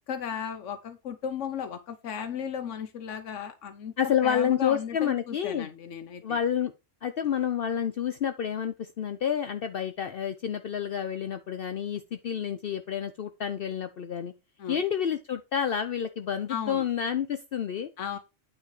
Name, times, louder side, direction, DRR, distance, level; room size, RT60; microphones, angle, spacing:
voice 1, 0.1-3.9 4.2-6.4 14.6-14.8 16.5-16.9 18.0-18.2, left 7 dB, 85° left, 7 dB, 1.2 m, -35 dB
voice 2, 4.0-5.7 6.2-6.7 7.0-14.3 14.7-17.9, left 8 dB, 60° left, 10 dB, 0.8 m, -29 dB
9.2 x 4.3 x 4.7 m, 0.28 s
omnidirectional pair, 1.2 m